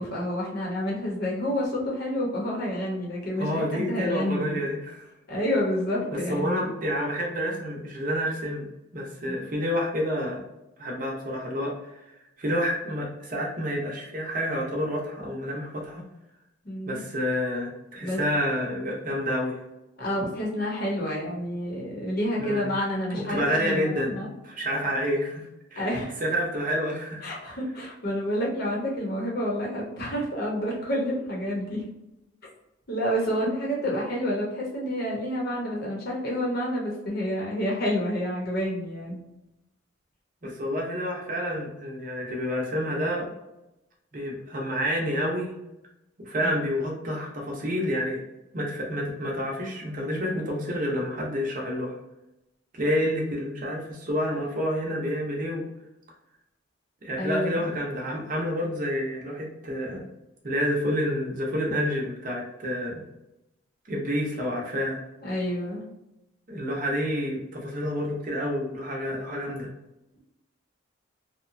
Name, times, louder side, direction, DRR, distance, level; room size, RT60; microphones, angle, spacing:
voice 1, 0.0-4.6 5.3-6.6 9.2-9.5 16.6-17.0 18.0-18.2 20.0-24.3 25.8-26.2 27.2-31.8 32.9-39.2 46.4-46.5 57.2-57.7 65.2-65.9, equal, 50° left, -3 dB, 0.8 m, -29 dB
voice 2, 3.4-5.1 6.3-8.6 8.9-10.4 10.8-12.0 12.4-16.0 16.9-19.6 22.4-22.7 23.1-25.9 26.2-27.2 40.4-43.3 44.1-45.5 46.2-48.2 48.5-52.0 52.7-55.6 57.0-60.0 60.4-63.0 63.9-65.0 66.5-69.7, equal, 40° right, -1 dB, 0.7 m, -29 dB
2.8 x 2.1 x 2.5 m, 0.91 s
head